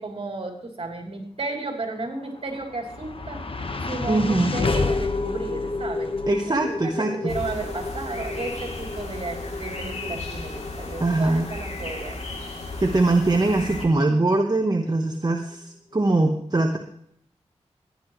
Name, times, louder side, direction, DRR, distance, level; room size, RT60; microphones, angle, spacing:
voice 1, 0.0-3.4 3.9-6.1 6.6-12.2, right 3 dB, 55° right, 1 dB, 3.5 m, -33 dB
sound 1, 2.1-14.4, left 3 dB, 55° left, 1.4 m, -31 dB
voice 2, 4.1-4.5 6.3-7.1 11.0-11.5 12.8-16.8, right 2 dB, 35° right, 3 dB, 1.3 m, -22 dB
sound 2, 7.3-13.9, left 2 dB, 75° left, 3.2 m, -35 dB
16.0 x 11.0 x 3.2 m, 0.70 s
cardioid pair, 55°, 11 cm